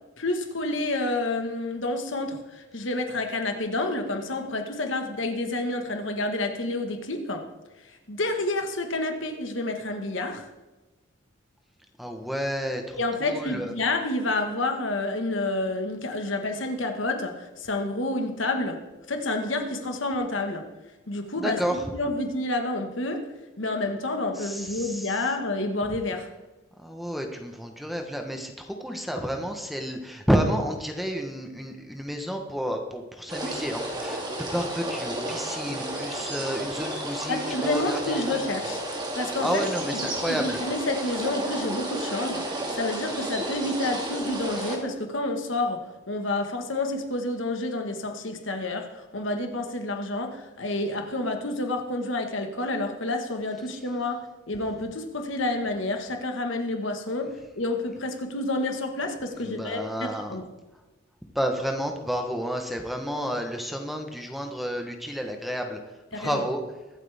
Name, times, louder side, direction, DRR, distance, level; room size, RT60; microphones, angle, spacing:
voice 1, 0.2-7.4 8.1-10.4 13.0-18.8 19.1-20.7 21.1-23.3 23.6-26.3 37.3-38.8 39.2-54.2 54.5-60.5 66.1-66.5, left 2 dB, 75° left, 4 dB, 1.6 m, -29 dB
voice 2, 12.0-13.7 21.4-21.8 24.4-25.2 26.8-38.2 39.4-40.6 59.4-60.4 61.3-65.8 66.2-66.6, equal, ahead, 3 dB, 1.1 m, -30 dB
sound 1, 33.3-44.8, right 1 dB, 20° right, 2.1 m, -32 dB
23.0 x 8.3 x 3.6 m, 1.1 s
head